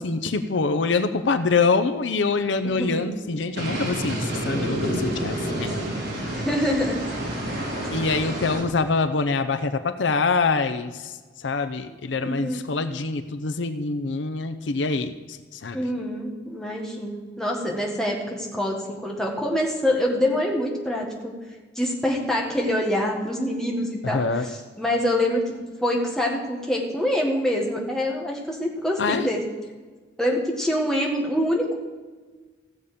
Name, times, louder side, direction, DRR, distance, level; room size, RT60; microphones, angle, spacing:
voice 1, 0.0-5.8 6.2-6.4 7.9-11.1 11.4-15.1 15.5-15.8 24.0-24.5 29.0-29.3, left 4 dB, 80° left, 10 dB, 0.6 m, -25 dB
voice 2, 2.6-3.1 6.2-7.0 7.5-7.7 12.2-12.7 15.7-21.3 21.7-29.4 30.2-31.7, left 1 dB, 5° left, -2 dB, 1.6 m, -25 dB
sound 1, 3.6-8.6, right 1 dB, 65° right, 3.6 m, -29 dB
16.0 x 7.0 x 5.2 m, 1.4 s
head